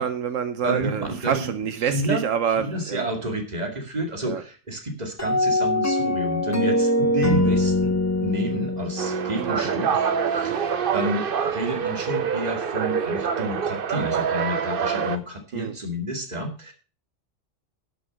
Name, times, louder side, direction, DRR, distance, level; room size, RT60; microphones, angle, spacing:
voice 1, 0.0-3.1 4.2-4.4 9.6-9.7 15.5-15.7, right 7 dB, 85° right, 1.3 m, -26 dB
voice 2, 0.6-1.5 1.8-2.2 2.6-8.0 8.2-16.7, right 1 dB, 35° right, 2.5 m, -30 dB
sound 1, 5.2-10.4, left 1 dB, 15° left, 1.1 m, -23 dB
sound 2, 9.0-15.2, right 7 dB, 50° right, 0.9 m, -25 dB
11.5 x 6.9 x 6.3 m
omnidirectional pair, 1.3 m